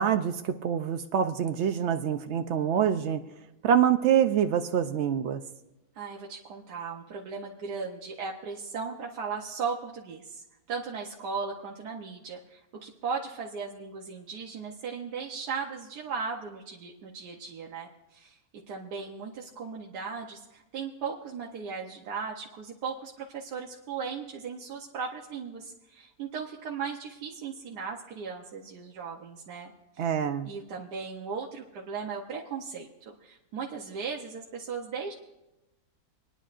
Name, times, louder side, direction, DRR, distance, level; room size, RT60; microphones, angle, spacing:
voice 1, 0.0-3.2 3.6-5.4 30.0-30.5, right 8 dB, 90° right, 8 dB, 0.6 m, -25 dB
voice 2, 5.9-18.4 18.7-30.1 30.4-35.1, right 5 dB, 70° right, -1 dB, 1.4 m, -37 dB
27.0 x 10.0 x 2.5 m, 1.0 s
omnidirectional pair, 1.8 m